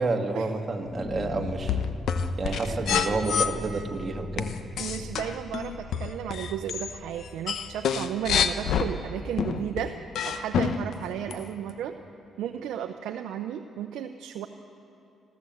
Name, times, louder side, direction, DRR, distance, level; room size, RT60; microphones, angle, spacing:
voice 1, 0.0-1.8 2.4-4.5, right 3 dB, 35° right, 2 dB, 2.1 m, -29 dB
sound 1, 0.8-9.9, left 2 dB, 35° left, 1.5 m, -41 dB
sound 2, 1.4-3.5 4.4-6.9 7.2-8.9 9.4-10.9 11.3-11.4, left 7 dB, 70° left, 1.0 m, -27 dB
voice 2, 2.6-2.9 4.8-9.9 10.2-12.0 12.4-14.5, right 10 dB, 85° right, 5 dB, 0.7 m, -34 dB
26.0 x 14.0 x 8.0 m, 2.7 s
cardioid pair, 90°, 0 cm